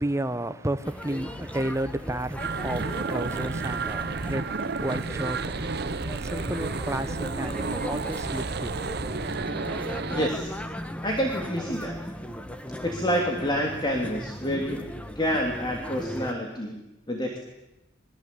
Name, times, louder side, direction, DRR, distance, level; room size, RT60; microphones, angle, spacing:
voice 1, 0.0-9.0, right 1 dB, 15° right, 1.1 m, -32 dB
sound 1, 0.8-16.3, equal, 5° left, 1.7 m, -37 dB
sound 2, 2.4-10.3, right 4 dB, 55° right, 0.8 m, -31 dB
voice 2, 10.1-10.5 11.0-12.0 12.8-14.9 15.1-16.8 17.1-17.4, equal, 25° left, 3.1 m, -28 dB
27.5 x 22.5 x 8.6 m
head